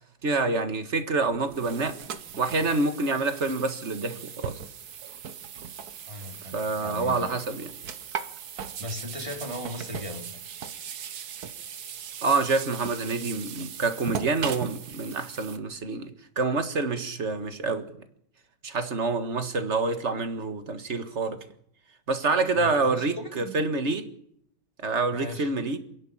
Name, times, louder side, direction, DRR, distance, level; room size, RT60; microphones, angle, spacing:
voice 1, 0.2-2.0 2.4-4.6 6.5-7.7 12.2-16.1 16.4-17.9 18.6-21.4 22.1-24.1 24.8-25.8, right 3 dB, 40° right, 1.8 m, -27 dB
sound 1, 1.3-15.6, right 8 dB, 60° right, 1.5 m, -39 dB
voice 2, 6.0-7.3 8.5-10.4 22.5-23.5 25.1-25.5, left 1 dB, 15° right, 3.1 m, -38 dB
27.5 x 10.5 x 8.9 m
omnidirectional pair, 1.9 m